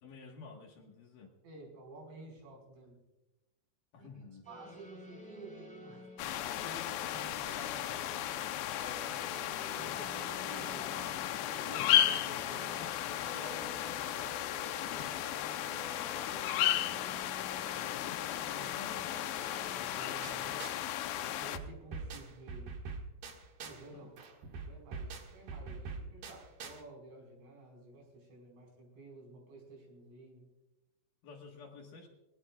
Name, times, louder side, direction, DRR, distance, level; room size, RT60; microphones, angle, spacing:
voice 1, 0.0-1.3 3.9-4.4 13.6-13.8 17.7-19.3 20.0-20.1 23.9-24.1 31.2-32.1, left 4 dB, 60° left, 1 dB, 2.6 m, -51 dB
voice 2, 1.4-3.0 4.0-4.1 4.5-6.1 6.6-9.2 9.7-11.2 11.5-12.8 13.2-16.1 16.5-17.4 17.7-17.9 19.7-20.8 21.3-22.8 23.6-24.1 24.6-30.5, right 2 dB, 75° right, 0 dB, 7.2 m, -52 dB
sound 1, 4.4-22.5, left 1 dB, ahead, 2.9 m, -53 dB
sound 2, 6.2-21.6, left 12 dB, 80° left, 2.7 m, -34 dB
sound 3, 20.2-20.9 21.2-23.9 24.2-26.8, right 4 dB, 55° right, 2.9 m, -44 dB
23.0 x 18.5 x 2.4 m, 0.99 s
omnidirectional pair, 5.0 m